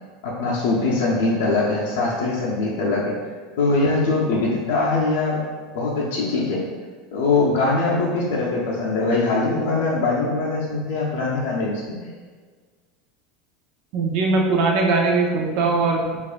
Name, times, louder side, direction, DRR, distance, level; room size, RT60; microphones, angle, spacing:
voice 1, 0.2-3.1 3.6-5.4 5.7-6.6 7.1-12.1, left 3 dB, 80° left, -5 dB, 0.7 m, -22 dB
voice 2, 13.9-16.2, right 3 dB, 50° right, 1 dB, 0.6 m, -20 dB
4.8 x 2.6 x 2.5 m, 1.5 s
supercardioid pair, 165°, 0 cm